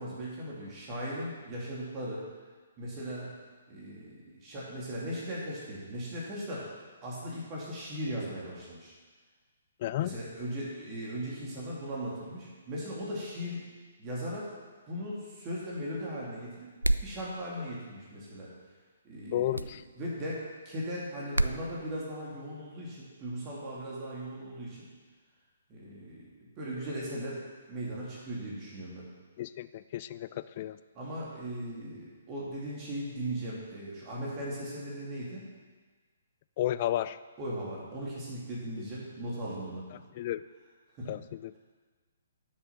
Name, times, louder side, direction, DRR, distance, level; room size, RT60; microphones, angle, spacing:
voice 1, 0.0-2.2 2.8-3.3 3.7-6.7 7.0-8.9 10.0-13.6 14.0-14.5 14.9-16.7 17.0-18.5 19.0-19.6 20.0-20.4 20.6-24.9 25.7-27.4 27.7-29.1 30.9-35.4 37.4-39.8 41.0-41.2, equal, 25° right, -6 dB, 2.7 m, -38 dB
voice 2, 9.8-10.2 19.3-19.8 29.4-30.8 36.6-37.2 40.1-40.4 41.1-41.5, left 13 dB, 40° left, 15 dB, 0.4 m, -32 dB
sound 1, 16.8-17.2 19.5-19.7 21.3-21.6, right 1 dB, 90° right, 0.4 m, -27 dB
11.0 x 6.6 x 5.9 m, 1.4 s
figure-of-eight pair, 125°, 0 cm